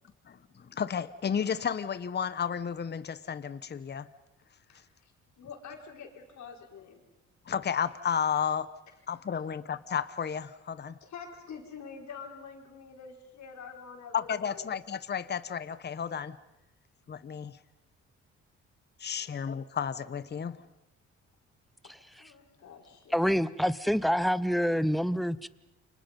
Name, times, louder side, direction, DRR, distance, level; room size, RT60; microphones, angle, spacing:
voice 1, 0.3-4.1 7.5-8.7 9.1-10.9 14.1-16.3 17.1-17.6 19.0-20.6, left 7 dB, 35° left, 1.0 m, -32 dB
voice 2, 4.7-7.0 11.0-14.7 19.1-19.3 21.8-23.4, left 6 dB, 65° left, 5.0 m, -47 dB
voice 3, 23.1-25.5, equal, ahead, 0.8 m, -26 dB
29.5 x 25.5 x 5.4 m
cardioid pair, 90°, 30 cm